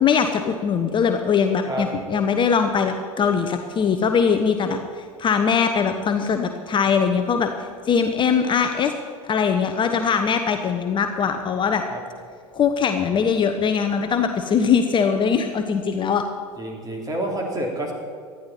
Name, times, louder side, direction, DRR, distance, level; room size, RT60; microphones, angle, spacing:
voice 1, 0.0-7.5 7.8-8.9 9.2-11.8 12.5-16.3, left 6 dB, 30° left, 6 dB, 1.0 m, -21 dB
voice 2, 16.6-17.9, right 1 dB, 20° right, 1 dB, 3.5 m, -28 dB
19.0 x 13.0 x 4.4 m, 2.2 s
figure-of-eight pair, 75°, 17 cm